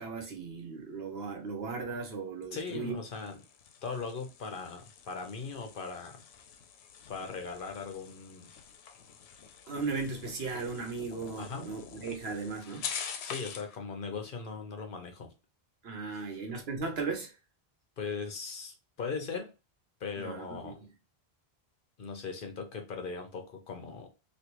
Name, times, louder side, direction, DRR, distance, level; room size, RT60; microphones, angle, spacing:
voice 1, 0.0-3.0 9.7-12.9 15.8-17.3 20.2-20.7, right 4 dB, 75° right, 1.2 m, -37 dB
voice 2, 2.5-3.4 3.8-6.2 7.1-8.5 11.4-11.7 13.2-15.3 16.1-16.2 18.0-19.5 20.0-20.8 22.0-24.1, left 5 dB, 60° left, 0.9 m, -39 dB
sound 1, 3.1-13.8, left 7 dB, 90° left, 0.8 m, -45 dB
3.2 x 2.6 x 2.9 m
omnidirectional pair, 1.1 m